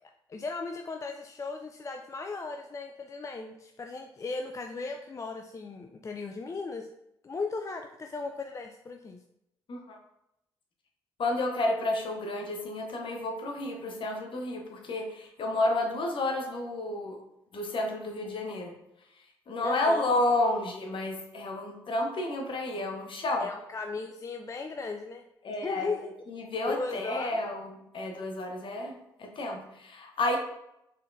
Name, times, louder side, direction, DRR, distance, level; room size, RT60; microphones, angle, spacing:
voice 1, 0.0-6.9 7.2-9.2 19.6-20.1 23.4-25.2 25.6-26.1 26.7-27.4, left 4 dB, 30° left, 4 dB, 0.4 m, -37 dB
voice 2, 11.2-17.2 17.5-18.7 19.5-23.5 25.4-25.9 26.3-30.4, left 2 dB, 50° left, 2 dB, 0.9 m, -31 dB
4.2 x 3.7 x 2.6 m, 0.82 s
hypercardioid pair, 50°, 11 cm